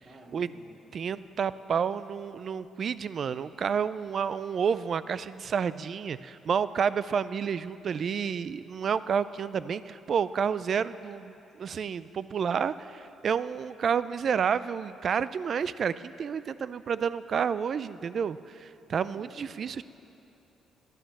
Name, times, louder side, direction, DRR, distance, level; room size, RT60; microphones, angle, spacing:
voice 1, 0.0-1.2 19.1-19.7, equal, 35° right, -1 dB, 2.8 m, -52 dB
voice 2, 0.9-19.8, right 7 dB, 55° right, 16 dB, 0.4 m, -30 dB
12.5 x 11.0 x 7.2 m, 2.8 s
cardioid pair, 90°, 0 cm